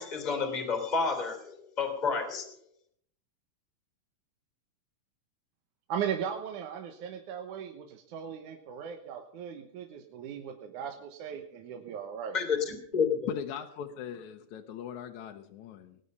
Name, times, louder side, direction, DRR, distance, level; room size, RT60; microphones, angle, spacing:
voice 1, 0.0-2.5 12.3-13.2, left 5 dB, 15° left, 4 dB, 2.5 m, -30 dB
voice 2, 5.9-12.4, right 8 dB, 70° right, 4 dB, 2.5 m, -37 dB
voice 3, 13.3-16.0, left 9 dB, 70° left, 4 dB, 2.0 m, -39 dB
19.0 x 9.9 x 5.4 m, 0.68 s
omnidirectional pair, 3.9 m